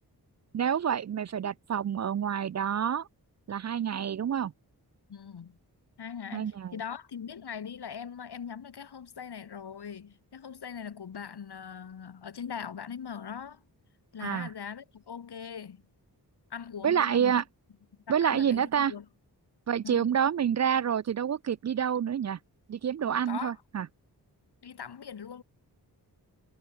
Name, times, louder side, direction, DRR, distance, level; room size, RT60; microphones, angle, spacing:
voice 1, 0.5-3.1 3.5-4.5 6.3-6.7 14.2-14.5 16.8-17.4 18.1-18.9 19.7-22.4 22.7-23.9, right 8 dB, 45° right, 0.4 m, -28 dB
voice 2, 5.1-5.6 6.0-13.6 14.1-15.8 16.5-17.4 18.1-19.1 19.8-20.1 23.2-23.6 24.6-25.4, left 7 dB, 80° left, 2.9 m, -41 dB
wide cardioid pair, 75°, 39 cm